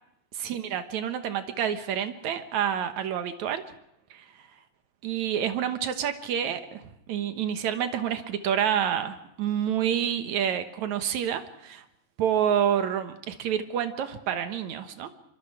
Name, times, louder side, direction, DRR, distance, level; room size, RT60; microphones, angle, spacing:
voice 1, 0.4-3.6 4.1-4.2 5.0-11.8 12.2-15.1, right 9 dB, 65° right, 9 dB, 2.4 m, -28 dB
25.0 x 24.5 x 4.9 m, 0.77 s
omnidirectional pair, 3.9 m